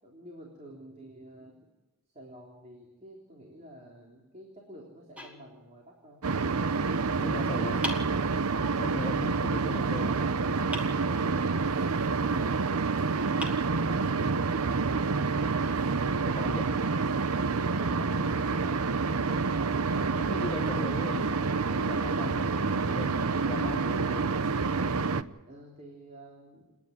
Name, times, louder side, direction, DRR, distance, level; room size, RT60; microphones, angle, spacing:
voice 1, 0.0-1.6 2.1-6.3 7.3-7.9 9.3-10.4 16.3-16.8 25.5-26.8, right 1 dB, 30° right, 3.6 m, -49 dB
sound 1, 5.2-6.2 7.8-8.8 10.7-11.6 12.8-12.9 13.4-14.4, left 1 dB, 5° right, 2.6 m, -41 dB
sound 2, 6.2-25.2, right 4 dB, 80° right, 0.8 m, -28 dB
voice 2, 7.2-8.2 8.8-10.2 14.6-15.0 16.2-16.8 18.6-18.8 20.2-24.4, left 2 dB, 25° left, 1.0 m, -39 dB
29.5 x 10.5 x 9.2 m
head